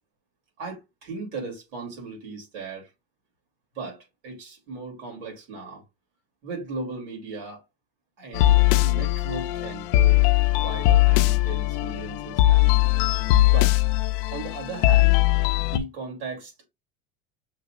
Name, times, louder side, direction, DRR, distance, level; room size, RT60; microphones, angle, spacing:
voice 1, 0.6-2.9 3.7-5.8 6.4-7.6 8.2-10.2 10.6-12.9 13.5-13.8 14.3-15.2 15.6-16.7, right 3 dB, 80° right, 3.0 m, -37 dB
sound 1, 8.3-15.8, left 16 dB, 70° left, 0.5 m, -20 dB
6.3 x 2.5 x 3.0 m
cardioid pair, 170°, 29 cm